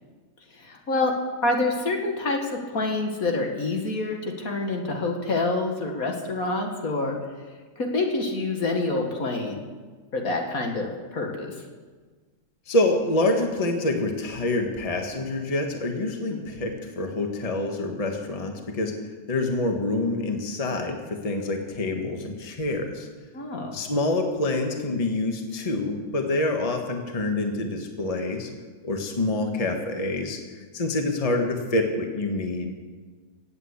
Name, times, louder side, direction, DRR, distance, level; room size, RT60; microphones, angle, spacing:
voice 1, 0.6-1.1 1.4-7.2 7.8-9.6 10.1-11.5 16.3-16.4 23.3-23.8, left 2 dB, 55° left, 2 dB, 2.2 m, -27 dB
voice 2, 12.7-18.9 19.3-23.1 23.7-28.5 28.8-32.7, left 2 dB, 20° left, 3 dB, 1.4 m, -26 dB
16.5 x 8.5 x 8.4 m, 1.4 s
omnidirectional pair, 1.8 m